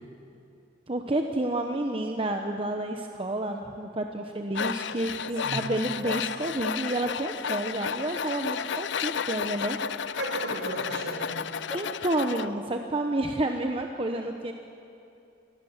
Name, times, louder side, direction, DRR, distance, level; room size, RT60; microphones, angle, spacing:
voice 1, 0.9-9.8 11.7-14.5, right 1 dB, 30° right, 4 dB, 1.0 m, -30 dB
Tools, 4.5-12.5, left 7 dB, 65° left, 0.5 m, -32 dB
voice 2, 10.1-11.4, right 2 dB, 65° right, 2 dB, 5.0 m, -34 dB
28.0 x 21.0 x 7.4 m, 2.7 s
head